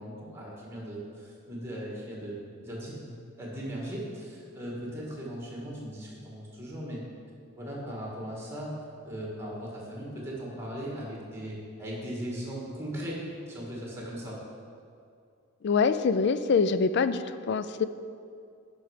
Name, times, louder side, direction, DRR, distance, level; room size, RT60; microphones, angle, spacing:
voice 1, 0.0-2.4 2.6-7.0 7.6-8.7 9.0-13.2 13.5-14.4, equal, 10° right, -4 dB, 2.0 m, -38 dB
voice 2, 15.6-17.8, left 5 dB, 50° left, 12 dB, 0.3 m, -25 dB
10.5 x 5.4 x 5.0 m, 2.4 s
head